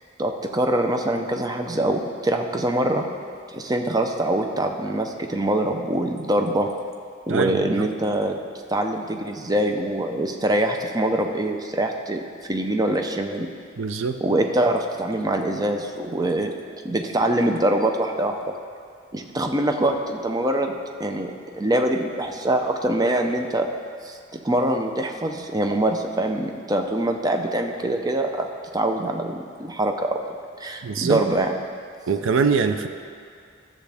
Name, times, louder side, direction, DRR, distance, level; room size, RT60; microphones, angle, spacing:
voice 1, 0.2-3.1 3.5-6.7 7.3-8.4 8.7-13.5 14.2-16.5 16.8-18.4 19.1-23.7 24.0-28.5 28.7-30.2 30.6-31.5, right 1 dB, 20° right, 4 dB, 0.5 m, -24 dB
voice 2, 7.3-7.9 13.8-14.2 30.8-31.2 32.1-32.9, right 5 dB, 80° right, 7 dB, 0.5 m, -23 dB
13.0 x 7.2 x 3.5 m, 2.3 s
head